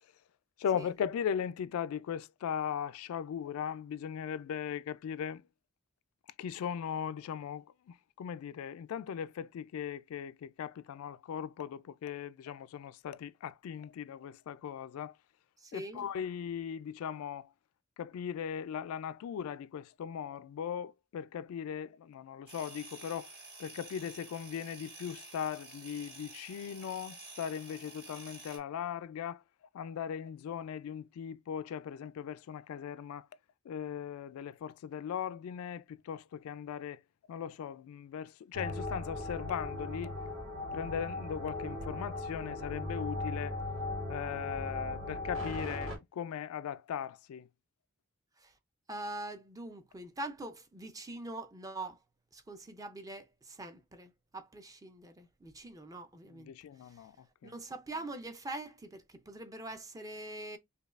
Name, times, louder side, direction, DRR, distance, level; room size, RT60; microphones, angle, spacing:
voice 1, 0.6-5.4 6.4-15.2 15.7-17.5 18.0-23.3 23.6-29.4 29.7-33.3 33.7-37.0 37.3-40.1 40.7-43.6 44.1-47.5 56.3-57.1 57.4-57.5, left 8 dB, 85° left, 0.3 m, -38 dB
voice 2, 15.6-16.1 48.4-48.5 48.9-52.0 52.3-56.5 56.8-57.0 57.4-60.6, right 2 dB, 15° right, 0.4 m, -43 dB
sound 1, 22.5-28.6, right 3 dB, 45° right, 2.4 m, -50 dB
sound 2, 38.5-46.0, left 2 dB, 70° right, 2.1 m, -38 dB
5.2 x 2.2 x 2.4 m
head